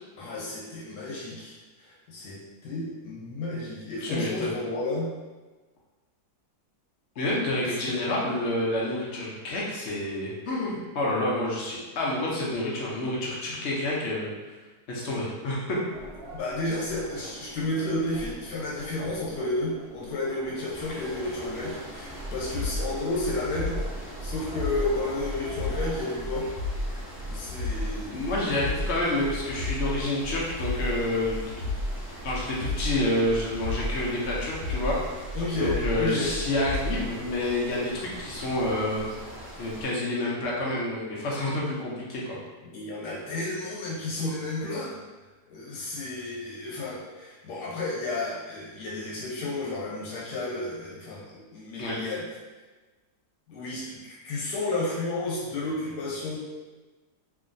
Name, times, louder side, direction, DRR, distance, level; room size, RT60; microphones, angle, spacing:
voice 1, 0.2-5.1 7.9-8.0 16.3-26.5 27.0-28.2 35.3-36.3 42.7-45.0 45.5-52.4 53.5-56.4, left 2 dB, 80° left, -5 dB, 1.5 m, -32 dB
voice 2, 4.0-4.6 7.2-14.6 14.9-15.8 28.1-31.6 32.2-35.2 35.6-39.0 39.6-42.4 51.8-52.0, left 1 dB, 55° left, -4 dB, 0.8 m, -28 dB
sound 1, 15.9-26.2, right 1 dB, 65° right, 0.8 m, -45 dB
sound 2, 20.7-39.9, equal, 25° left, 1.0 m, -43 dB
sound 3, 22.1-37.1, left 1 dB, 85° right, 1.3 m, -33 dB
3.1 x 2.7 x 2.6 m, 1.2 s
omnidirectional pair, 1.8 m